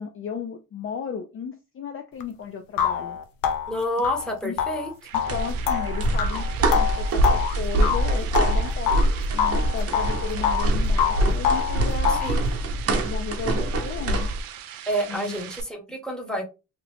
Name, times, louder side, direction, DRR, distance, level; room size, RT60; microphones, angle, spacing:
voice 1, 0.0-3.2 4.4-4.6 5.1-9.1 9.3-12.3 13.0-14.3 15.1-15.4, left 6 dB, 40° left, 0.4 m, -34 dB
sound 1, 2.2-2.3 2.8-9.1 9.4-10.7 11.0-12.4, left 8 dB, 90° left, 0.6 m, -26 dB
voice 2, 3.7-4.9 12.1-12.5 14.9-16.5, equal, ahead, 1.0 m, -29 dB
sound 2, 4.6-15.6, right 10 dB, 85° right, 0.6 m, -41 dB
sound 3, 5.3-14.4, right 1 dB, 45° right, 0.8 m, -24 dB
2.9 x 2.5 x 3.3 m
cardioid pair, 110°, 33 cm